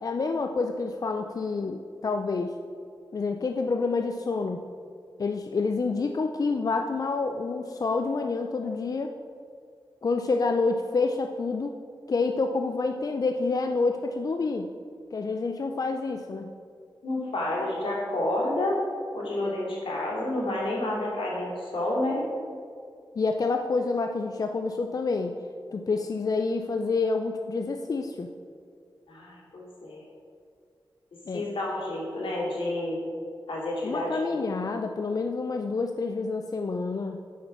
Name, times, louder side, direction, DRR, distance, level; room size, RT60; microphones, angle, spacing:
voice 1, 0.0-2.5 3.1-4.6 5.2-9.1 10.0-11.7 12.1-14.7 15.1-16.5 23.2-25.4 25.7-28.3 31.3-31.5 33.8-37.2, left 4 dB, 45° left, 5 dB, 0.4 m, -28 dB
voice 2, 17.0-18.8 19.1-22.2 29.1-30.0 31.3-33.0 33.5-34.2, left 1 dB, 85° left, -4 dB, 2.6 m, -29 dB
8.5 x 5.8 x 6.0 m, 2.3 s
wide cardioid pair, 115°, 9 cm